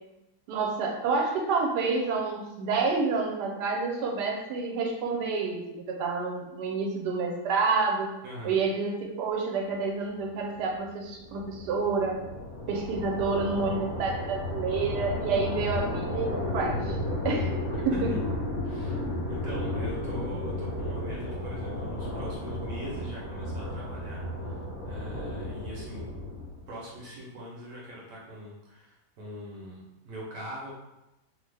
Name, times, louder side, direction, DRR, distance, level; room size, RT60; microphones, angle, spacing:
voice 1, 0.5-8.1 8.4-12.2 12.7-17.0 17.2-17.5 17.8-18.1, right 4 dB, 85° right, 1 dB, 1.2 m, -29 dB
voice 2, 8.2-8.6 17.9-18.2 18.6-19.0 19.3-26.1 26.7-30.7, equal, 65° right, -3 dB, 1.0 m, -42 dB
sound 1, 10.5-26.8, left 1 dB, 60° left, 1.4 m, -33 dB
3.2 x 2.1 x 3.2 m, 0.95 s
omnidirectional pair, 1.8 m